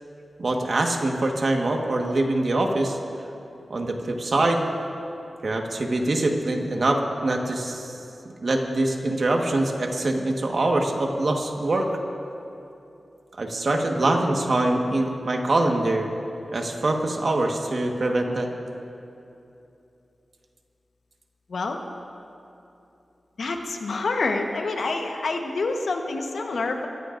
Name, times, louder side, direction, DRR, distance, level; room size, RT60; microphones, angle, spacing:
voice 1, 0.4-3.0 3.7-4.6 5.4-7.9 8.4-11.9 13.4-16.1 16.5-18.5, right 2 dB, 55° right, 2 dB, 1.5 m, -24 dB
voice 2, 21.5-21.8 23.4-26.9, left 3 dB, 75° left, 3 dB, 1.2 m, -27 dB
24.0 x 15.0 x 2.6 m, 2.8 s
wide cardioid pair, 110°, 0 cm